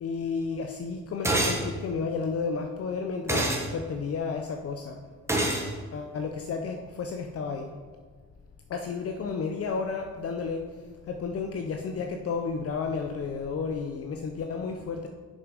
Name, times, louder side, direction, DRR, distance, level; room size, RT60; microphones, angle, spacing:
voice 1, 0.0-5.0 5.9-7.7 8.7-10.6 11.1-15.1, left 5 dB, 50° left, 4 dB, 0.7 m, -32 dB
sound 1, 1.2-1.6 3.3-3.6 5.3-5.7, right 1 dB, 10° right, 1.4 m, -25 dB
6.4 x 6.0 x 5.1 m, 1.5 s
cardioid pair, 90°, 30 cm